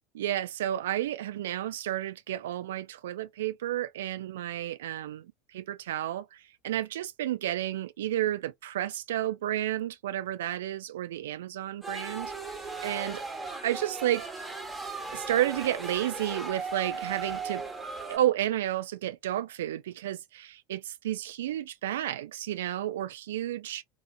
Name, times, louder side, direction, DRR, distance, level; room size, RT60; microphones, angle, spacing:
voice 1, 0.2-12.3 12.8-13.2 13.6-14.2 15.1-17.6 18.1-23.8, right 13 dB, 65° right, 0.4 m, -31 dB
sound 1, 11.8-18.2, right 4 dB, 5° right, 1.0 m, -37 dB
2.9 x 2.0 x 2.4 m
figure-of-eight pair, 75°, 0 cm